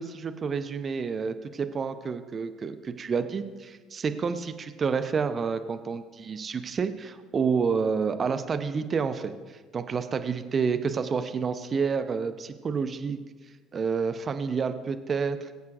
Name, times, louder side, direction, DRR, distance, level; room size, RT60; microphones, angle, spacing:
voice 1, 0.0-13.2 13.7-15.5, right 5 dB, 35° right, 9 dB, 0.8 m, -29 dB
22.0 x 8.1 x 2.5 m, 1.3 s
figure-of-eight pair, 60°, 0 cm